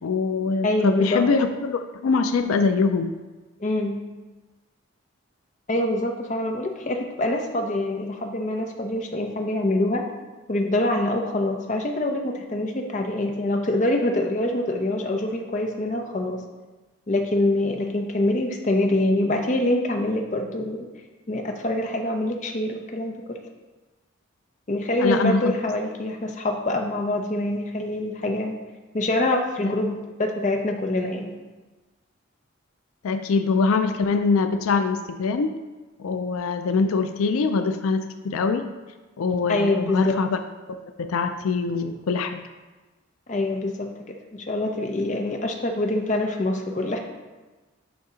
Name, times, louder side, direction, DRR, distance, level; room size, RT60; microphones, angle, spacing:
voice 1, 0.0-3.1 25.0-25.6 29.6-29.7 33.0-35.6 36.0-38.7 39.2-40.4 40.7-42.4, left 4 dB, 85° left, 8 dB, 0.4 m, -23 dB
voice 2, 0.6-1.2 3.6-4.0 5.7-10.1 10.5-16.4 17.1-20.9 21.3-23.4 24.7-28.6 28.9-31.3 39.5-40.2 43.3-47.0, left 1 dB, 35° left, 3 dB, 0.6 m, -25 dB
8.0 x 2.8 x 4.9 m, 1.2 s
head